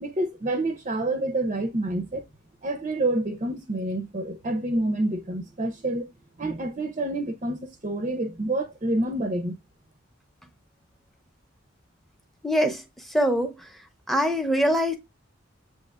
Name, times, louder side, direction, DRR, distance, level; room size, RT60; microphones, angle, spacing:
voice 1, 0.0-2.2 2.6-6.1 6.4-9.6, right 1 dB, 35° right, 0.6 m, -28 dB
voice 2, 12.4-13.7 14.1-15.0, equal, ahead, 0.7 m, -24 dB
7.6 x 2.9 x 2.3 m
head